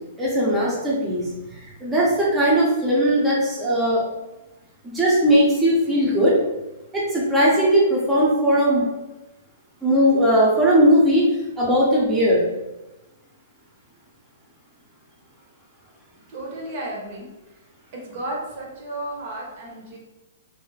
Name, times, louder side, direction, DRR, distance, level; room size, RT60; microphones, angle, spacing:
voice 1, 0.2-1.3 1.6-4.0 4.8-6.4 6.9-8.8 9.8-11.2 11.6-12.4, equal, 5° right, -7 dB, 0.6 m, -18 dB
voice 2, 16.3-17.2 18.1-20.0, right 1 dB, 45° right, -1 dB, 0.7 m, -33 dB
2.4 x 2.0 x 3.1 m, 1.0 s
hypercardioid pair, 155°, 0 cm